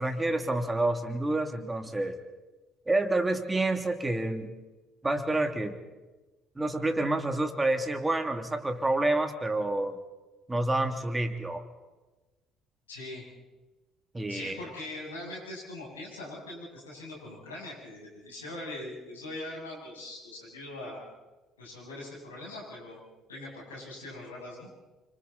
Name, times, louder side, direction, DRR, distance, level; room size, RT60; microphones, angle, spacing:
voice 1, 0.0-2.2 2.9-4.5 5.0-5.8 6.6-10.0 10.5-11.6 14.1-14.6, right 2 dB, 15° right, 6 dB, 2.9 m, -28 dB
voice 2, 12.9-13.2 14.3-21.0 21.6-24.7, left 2 dB, 85° left, -4 dB, 7.8 m, -42 dB
29.0 x 26.0 x 4.3 m, 1.2 s
figure-of-eight pair, 55°, 0 cm